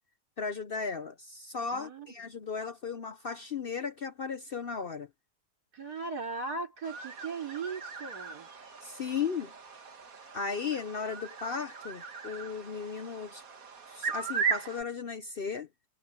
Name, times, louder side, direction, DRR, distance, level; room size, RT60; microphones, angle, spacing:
voice 1, 0.4-5.1 8.8-9.5 10.3-13.4 13.9-15.7, left 5 dB, 50° left, 0.7 m, -36 dB
voice 2, 1.7-2.2 5.7-8.5, right 4 dB, 80° right, 4.8 m, -38 dB
sound 1, 6.8-14.8, right 6 dB, 65° right, 2.2 m, -38 dB
omnidirectional pair, 1.6 m